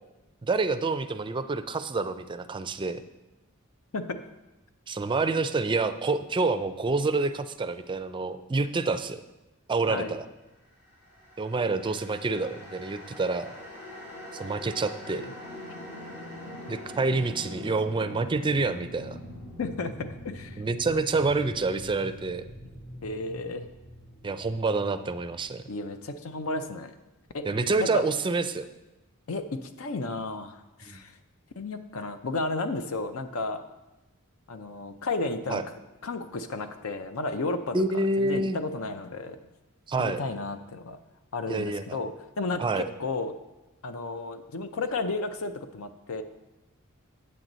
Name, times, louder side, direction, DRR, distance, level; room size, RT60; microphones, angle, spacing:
voice 1, 0.4-3.0 4.9-9.2 9.7-10.2 11.4-13.5 14.4-15.3 16.7-19.2 20.6-22.4 24.2-25.6 27.4-28.6 30.9-31.0 35.5-35.6 37.7-38.6 39.9-40.2 41.5-41.8 42.6-42.8, right 3 dB, 25° right, 10 dB, 0.4 m, -27 dB
sound 1, 11.0-26.2, left 1 dB, 55° left, 1.8 m, -43 dB
voice 2, 19.6-20.6 23.0-23.7 25.7-27.0 27.3-27.5 27.8-28.0 29.3-31.1 31.6-33.6 34.5-35.6 36.0-39.4 40.0-41.0 41.3-43.3 43.8-46.2, left 3 dB, 70° left, 9 dB, 0.6 m, -33 dB
8.6 x 7.6 x 3.9 m, 1.0 s
head